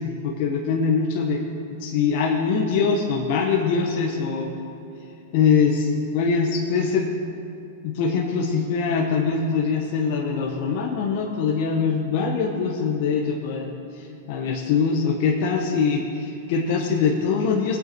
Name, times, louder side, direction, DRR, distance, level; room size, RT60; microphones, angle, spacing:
voice 1, 0.0-1.4 1.7-4.5 5.3-7.1 7.8-17.8, left 5 dB, 55° left, -1 dB, 1.3 m, -23 dB
20.0 x 8.2 x 4.7 m, 2.7 s
hypercardioid pair, 135°, 0 cm